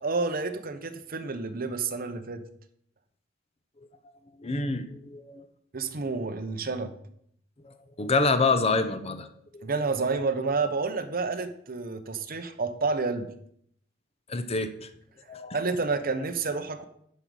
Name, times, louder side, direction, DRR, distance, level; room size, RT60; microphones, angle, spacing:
voice 1, 0.0-2.4 5.7-6.9 9.6-13.3 15.5-16.8, right 4 dB, 50° right, 7 dB, 0.9 m, -29 dB
voice 2, 4.4-5.5 7.6-9.3 9.5-9.7 14.3-14.9 15.3-15.6, left 3 dB, 30° left, 10 dB, 0.7 m, -27 dB
9.9 x 5.2 x 6.3 m, 0.69 s
head